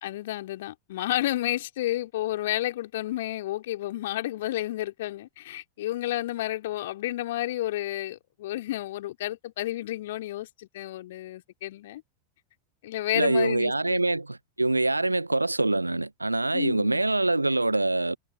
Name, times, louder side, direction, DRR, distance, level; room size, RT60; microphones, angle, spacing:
voice 1, 0.0-12.0 12.8-14.0 16.5-17.0, left 15 dB, 55° left, 2.7 m, -31 dB
voice 2, 13.1-18.2, right 2 dB, 85° right, 0.7 m, -25 dB
figure-of-eight pair, 90°, 0 cm